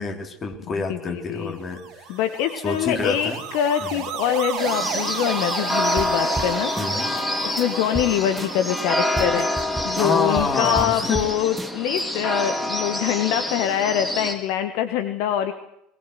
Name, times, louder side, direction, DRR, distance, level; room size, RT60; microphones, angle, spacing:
voice 1, 0.0-1.8 2.6-3.4 3.9-4.0 6.8-7.1 10.0-11.2, left 4 dB, 30° left, 4 dB, 4.2 m, -26 dB
voice 2, 0.9-1.6 2.1-6.7 7.4-9.5 9.8-15.5, left 10 dB, 60° left, 9 dB, 1.5 m, -24 dB
sound 1, 1.5-10.8, right 8 dB, 50° right, 2.3 m, -34 dB
sound 2, 4.6-14.3, left 1 dB, 5° left, 4.9 m, -27 dB
sound 3, 6.0-6.1 6.4-6.5 6.8-7.2 7.6-7.7 7.9-8.1 8.4-8.8 9.2-11.3 11.6-12.0, right 2 dB, 10° right, 1.3 m, -32 dB
21.5 x 19.5 x 7.9 m, 0.80 s
figure-of-eight pair, 70°, 0 cm